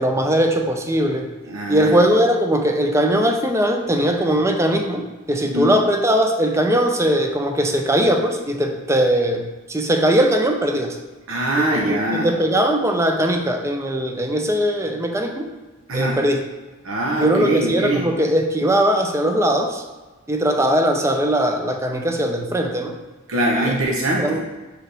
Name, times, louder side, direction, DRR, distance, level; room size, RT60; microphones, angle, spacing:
voice 1, 0.0-1.3 1.7-11.0 11.6-15.5 15.9-16.4 17.2-19.8 20.3-23.0 23.6-23.8 24.2-24.4, right 1 dB, 15° right, 4 dB, 0.5 m, -20 dB
voice 2, 1.5-2.1 5.4-5.7 11.3-12.3 15.9-16.2 16.8-18.0 23.3-24.4, right 1 dB, 85° right, -2 dB, 0.8 m, -22 dB
7.4 x 4.7 x 3.3 m, 1.2 s
head